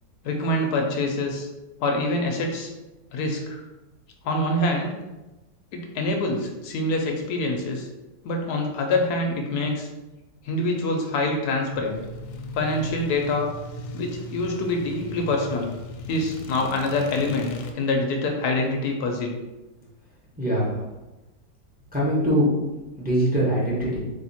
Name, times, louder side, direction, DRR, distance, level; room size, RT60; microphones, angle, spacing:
voice 1, 0.2-1.5 1.8-2.7 3.1-3.6 4.2-4.9 5.7-7.9 8.2-9.9 10.4-12.0 12.5-13.5 13.9-15.7 16.1-19.4, left 2 dB, 70° left, 2 dB, 1.0 m, -25 dB
sound 1, 11.7-17.7, left 1 dB, 90° left, 1.3 m, -37 dB
voice 2, 20.4-20.7 21.9-22.5 23.0-24.0, equal, 10° right, -6 dB, 0.4 m, -22 dB
3.5 x 2.8 x 4.1 m, 1.1 s
omnidirectional pair, 2.1 m